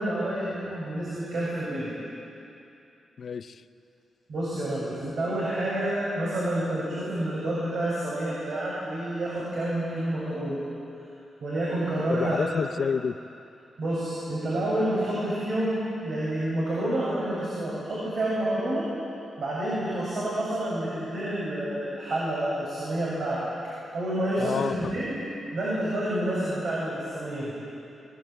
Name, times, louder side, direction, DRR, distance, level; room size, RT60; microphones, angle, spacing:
voice 1, 0.0-1.9 4.3-10.6 11.4-12.4 13.8-18.9 19.4-23.5 23.9-25.2 25.5-27.5, right 1 dB, 60° right, -7 dB, 8.0 m, -29 dB
voice 2, 3.2-3.6 12.1-13.2 24.4-25.0, left 6 dB, 50° left, 12 dB, 0.7 m, -29 dB
22.5 x 22.5 x 9.1 m, 2.7 s
wide cardioid pair, 145°, 0 cm